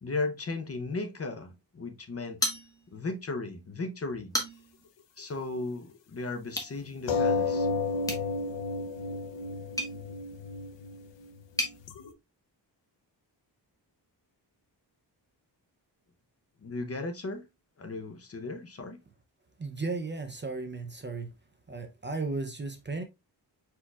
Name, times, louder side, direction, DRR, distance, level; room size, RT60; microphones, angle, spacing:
voice 1, 0.0-2.5 2.9-4.3 5.2-7.7 16.6-17.4 17.8-19.0, left 3 dB, 35° left, 0.7 m, -36 dB
sound 1, 2.4-3.2 3.5-3.6 4.1-4.8 6.5-6.8 8.0-11.8, left 1 dB, 10° left, 1.0 m, -36 dB
sound 2, 7.1-12.1, left 4 dB, 80° left, 0.7 m, -31 dB
voice 2, 19.6-21.3 21.7-23.0, right 3 dB, 25° right, 0.5 m, -35 dB
4.6 x 4.5 x 2.3 m
wide cardioid pair, 160°, 43 cm